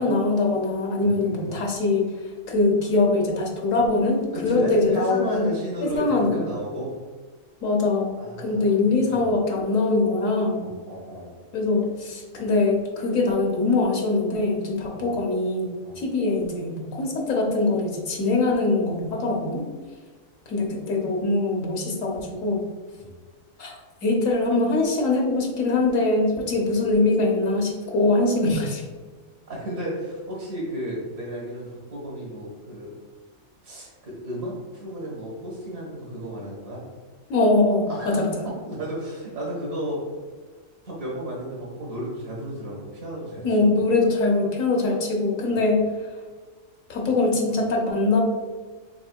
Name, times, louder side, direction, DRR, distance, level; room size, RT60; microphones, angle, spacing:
voice 1, 0.0-2.1 2.5-5.5 5.8-6.4 7.6-10.7 11.5-19.7 20.5-22.6 23.6-23.7 24.0-28.8 37.3-38.4 43.4-45.8 46.9-48.2, left 2 dB, 75° left, 0 dB, 1.3 m, -23 dB
voice 2, 1.0-1.5 4.3-6.9 8.2-9.3 10.6-11.3 14.9-15.2 15.8-16.0 23.0-23.2 29.5-32.9 33.6-36.8 37.9-40.0 40.8-44.0 45.5-45.6 47.5-47.6, right 1 dB, 75° right, -6 dB, 1.7 m, -33 dB
6.0 x 3.7 x 2.3 m, 1.5 s
omnidirectional pair, 1.4 m